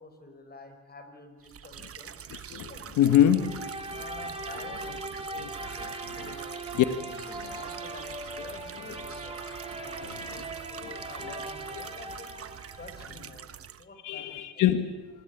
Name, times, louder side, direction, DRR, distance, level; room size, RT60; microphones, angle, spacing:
voice 1, 0.0-2.1 2.7-3.5 3.9-5.1 5.3-5.7 6.2-6.6 7.0-8.1 8.4-9.4 9.8-12.3 12.8-13.5 13.8-14.4, left 3 dB, 30° left, 7 dB, 5.5 m, -48 dB
sound 1, 1.4-13.8, right 9 dB, 50° right, 1.2 m, -44 dB
voice 2, 2.3-2.7 3.0-3.6 5.3-5.5 5.8-6.2 6.7-6.8 11.2-11.3 14.0-15.2, left 11 dB, 90° left, 10 dB, 1.5 m, -25 dB
sound 2, 3.4-13.3, right 2 dB, 20° right, 4.3 m, -40 dB
26.0 x 21.5 x 8.6 m, 1.3 s
cardioid pair, 90°, 30 cm